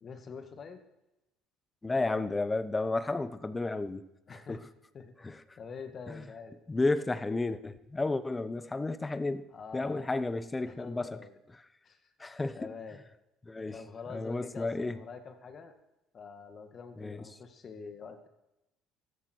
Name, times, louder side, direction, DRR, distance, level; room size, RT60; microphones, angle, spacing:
voice 1, 0.0-0.8 4.3-4.6 4.9-5.1 5.6-6.6 9.5-10.1 10.6-11.4 11.8-12.1 12.5-13.0 13.7-15.7 16.1-18.3, left 5 dB, 40° left, 7 dB, 1.9 m, -46 dB
voice 2, 1.8-4.1 4.5-4.6 5.2-5.4 6.1-6.2 6.7-9.4 9.7-11.2 12.2-12.6 13.5-13.8 14.1-15.0 17.0-17.2, left 2 dB, 20° left, 14 dB, 0.9 m, -32 dB
16.5 x 13.0 x 4.6 m, 0.95 s
supercardioid pair, 85°, 0 cm